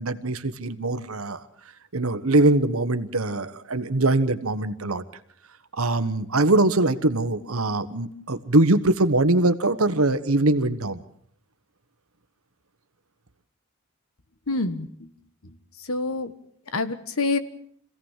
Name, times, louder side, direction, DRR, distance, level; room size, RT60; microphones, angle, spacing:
voice 1, 0.0-1.4 1.9-5.0 5.8-11.0, right 2 dB, 75° right, 12 dB, 1.3 m, -22 dB
voice 2, 14.5-15.1 15.4-16.3 16.7-17.4, left 3 dB, 75° left, 12 dB, 1.5 m, -27 dB
26.0 x 16.5 x 7.4 m, 0.64 s
head